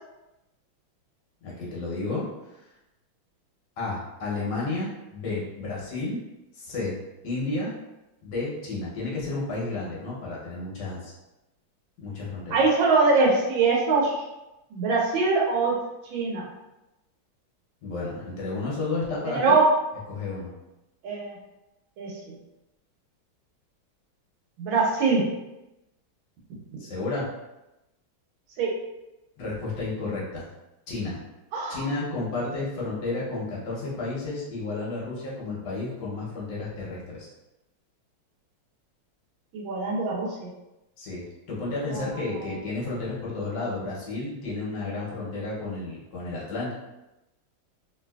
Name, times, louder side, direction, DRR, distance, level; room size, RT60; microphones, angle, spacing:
voice 1, 1.4-2.2 3.8-6.2 6.5-6.9 7.2-7.7 8.2-11.1 12.0-12.6 17.8-19.6 20.1-20.5 26.8-27.3 29.4-30.4 30.9-31.2 31.7-37.3 41.0-46.7, left 3 dB, 65° left, -5 dB, 1.3 m, -32 dB
voice 2, 12.5-14.1 14.7-15.7 16.1-16.4 19.3-19.6 21.0-21.4 22.0-22.4 24.6-25.2 28.6-28.7 31.5-31.8 39.5-40.5 41.9-42.1 42.3-42.5, right 4 dB, 75° right, -2 dB, 1.4 m, -23 dB
3.2 x 2.7 x 2.2 m, 0.96 s
omnidirectional pair, 2.2 m